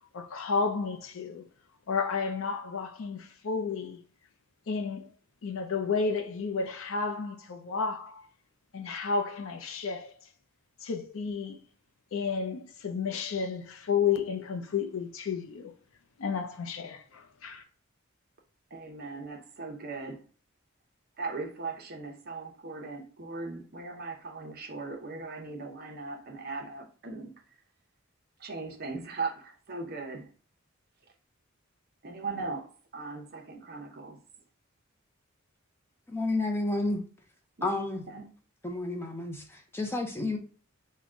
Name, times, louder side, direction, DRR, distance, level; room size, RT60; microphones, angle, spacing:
voice 1, 0.1-1.4 1.9-4.0 4.7-5.1 5.4-8.2 8.7-10.2 10.8-11.6 12.1-15.7 16.2-17.6, left 5 dB, 70° left, 0.5 m, -32 dB
voice 2, 18.7-20.2 21.2-27.3 28.4-30.3 32.0-34.2 37.6-38.3, right 3 dB, 50° right, 0.7 m, -39 dB
voice 3, 36.1-37.0 37.6-38.0 38.6-40.4, left 2 dB, 10° left, 0.5 m, -31 dB
3.6 x 2.2 x 3.6 m
head